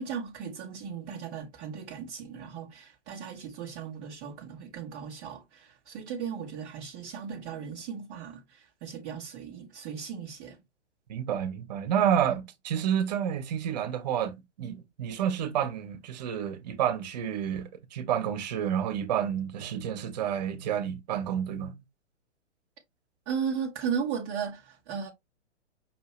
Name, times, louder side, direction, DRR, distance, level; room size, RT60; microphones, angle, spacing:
voice 1, 0.0-10.6 23.3-25.1, right 7 dB, 10° right, 0.4 m, -36 dB
voice 2, 11.1-21.7, right 9 dB, 35° right, 0.8 m, -29 dB
5.5 x 2.7 x 2.9 m
figure-of-eight pair, 120°, 36 cm